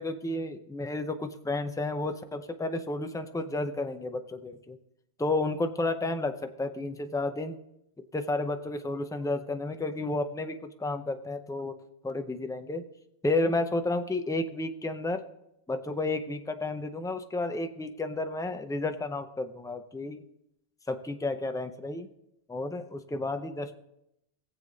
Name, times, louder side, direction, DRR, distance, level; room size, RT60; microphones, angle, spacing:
voice 1, 0.0-4.8 5.2-7.6 8.1-11.7 12.0-12.8 13.2-15.2 15.7-20.2 20.9-22.1 22.5-23.8, left 2 dB, 5° left, 7 dB, 0.4 m, -31 dB
20.0 x 7.5 x 3.9 m, 0.82 s
omnidirectional pair, 1.2 m